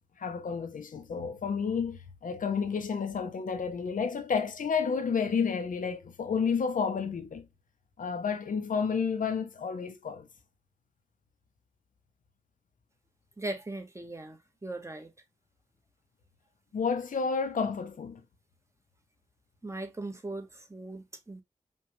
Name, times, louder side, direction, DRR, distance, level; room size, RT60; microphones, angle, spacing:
voice 1, 0.2-7.4 8.0-10.3 16.7-18.2, left 6 dB, 80° left, 0.8 m, -31 dB
voice 2, 13.4-15.1 19.6-21.4, right 2 dB, 20° right, 1.3 m, -39 dB
5.4 x 2.5 x 3.1 m
cardioid pair, 50°, 13 cm